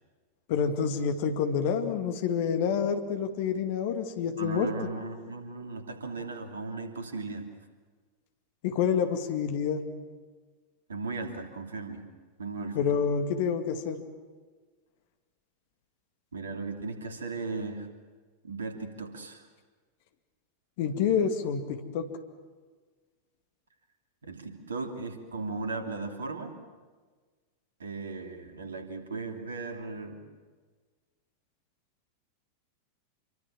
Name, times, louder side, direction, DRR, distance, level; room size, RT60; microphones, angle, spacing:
voice 1, 0.5-4.7 8.6-9.8 12.8-14.0 20.8-22.1, left 7 dB, 50° left, 7 dB, 2.2 m, -28 dB
voice 2, 4.4-7.5 10.9-12.0 12.4-13.0 16.3-17.9 18.4-19.5 24.2-26.6 27.8-30.2, right 3 dB, 70° right, 6 dB, 3.0 m, -37 dB
27.0 x 23.5 x 7.4 m, 1.4 s
figure-of-eight pair, 90°, 0 cm